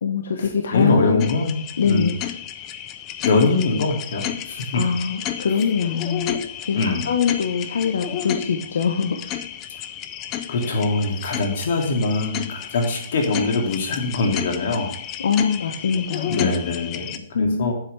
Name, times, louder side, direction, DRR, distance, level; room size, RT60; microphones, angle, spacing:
voice 1, 0.0-1.3 1.8-2.2 4.7-6.3 6.6-9.2 15.2-16.4 17.3-17.7, left 6 dB, 80° left, 5 dB, 1.0 m, -23 dB
voice 2, 0.7-1.6 1.8-2.1 3.2-4.8 6.7-7.1 10.5-14.9 16.3-17.7, left 3 dB, 60° left, 2 dB, 2.4 m, -22 dB
sound 1, 1.2-17.2, left 10 dB, 25° left, 0.5 m, -32 dB
9.4 x 7.8 x 3.3 m, 0.68 s
hypercardioid pair, 160°, 0 cm